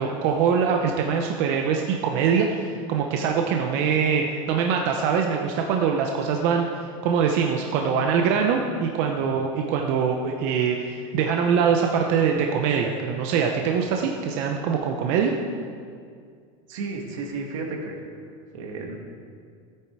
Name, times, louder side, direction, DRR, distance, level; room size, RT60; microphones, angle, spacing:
voice 1, 0.0-15.3, right 6 dB, 50° right, 2 dB, 0.9 m, -23 dB
voice 2, 16.7-18.0 18.5-19.0, right 3 dB, 80° right, 1 dB, 2.2 m, -32 dB
14.0 x 9.1 x 4.8 m, 2.2 s
supercardioid pair, 160°, 16 cm